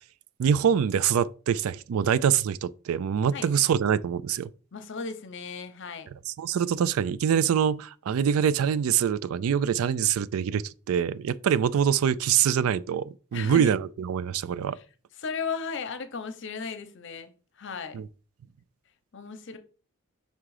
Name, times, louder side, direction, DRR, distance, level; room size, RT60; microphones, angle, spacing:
voice 1, 0.4-4.5 6.4-14.8 17.9-18.1, right 8 dB, 75° right, 0.3 m, -24 dB
voice 2, 4.7-6.1 13.3-13.7 14.7-14.8 15.2-18.0 19.1-19.6, left 5 dB, 55° left, 0.8 m, -36 dB
5.6 x 3.7 x 4.8 m
head